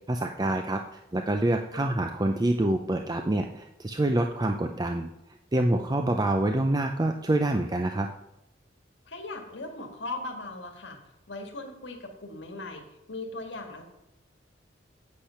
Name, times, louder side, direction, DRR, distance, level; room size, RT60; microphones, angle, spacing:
voice 1, 0.1-5.1 5.5-8.1, right 1 dB, 20° right, 5 dB, 0.5 m, -26 dB
voice 2, 9.1-13.8, left 2 dB, 75° left, 2 dB, 1.8 m, -39 dB
8.6 x 8.3 x 5.7 m, 0.85 s
head